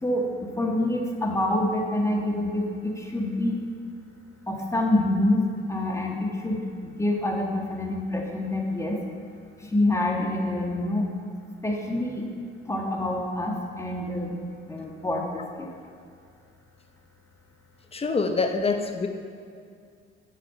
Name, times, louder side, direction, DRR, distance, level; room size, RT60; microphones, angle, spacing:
voice 1, 0.0-3.6 4.5-5.4 5.7-9.0 9.7-11.1 11.6-12.2 12.7-14.3 14.7-15.7, left 1 dB, 15° left, 0 dB, 1.8 m, -26 dB
voice 2, 17.9-19.1, left 4 dB, 30° left, 6 dB, 1.0 m, -25 dB
10.0 x 6.6 x 6.7 m, 2.3 s
cardioid pair, 90°, 20 cm